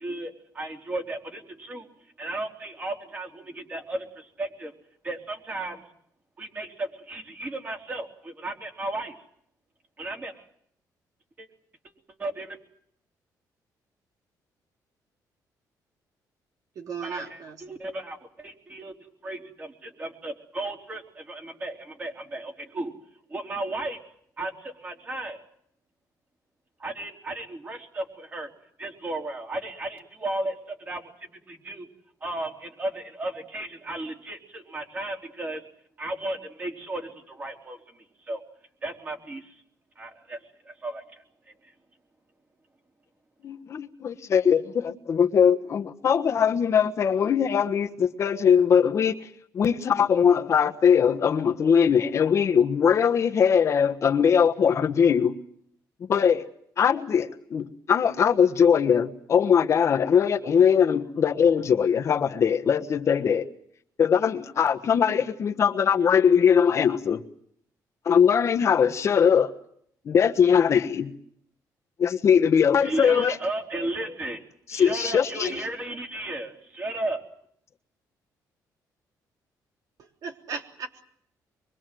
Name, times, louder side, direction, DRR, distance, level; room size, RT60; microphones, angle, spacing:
voice 1, 0.0-1.9 2.2-4.7 5.0-5.8 6.4-9.2 10.0-10.5 11.4-11.5 12.2-12.6 17.0-23.0 23.3-24.0 24.4-25.4 26.8-28.5 28.8-31.9 32.2-35.6 36.0-38.4 38.8-39.6 40.0-41.2 72.8-77.2, right 2 dB, 25° right, 3.8 m, -34 dB
voice 2, 16.8-17.6 80.0-81.0, right 5 dB, 60° right, 3.5 m, -37 dB
voice 3, 43.4-49.1 49.5-55.3 56.1-56.4 56.8-63.5 64.0-67.2 68.0-69.5 70.0-71.1 72.0-73.3 74.7-75.5, left 7 dB, 45° left, 1.3 m, -21 dB
25.0 x 23.0 x 7.7 m
cardioid pair, 150°, 7 cm